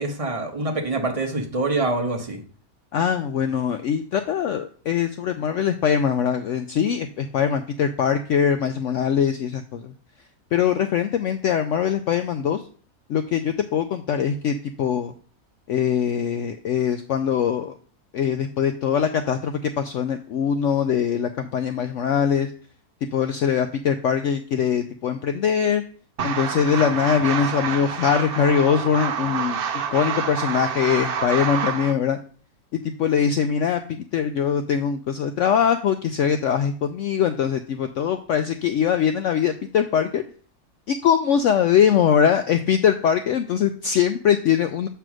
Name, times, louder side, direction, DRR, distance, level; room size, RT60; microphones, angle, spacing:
voice 1, 0.0-2.4, right 2 dB, 25° right, 2 dB, 1.0 m, -25 dB
voice 2, 2.9-9.9 10.5-12.6 13.1-15.1 15.7-17.7 18.1-22.5 23.1-25.8 26.2-29.6 29.9-32.2 33.0-40.2 40.9-44.9, left 8 dB, 70° left, 8 dB, 0.7 m, -22 dB
sound 1, 26.2-31.9, right 7 dB, 55° right, 0.6 m, -27 dB
7.6 x 3.4 x 6.1 m, 0.42 s
omnidirectional pair, 1.6 m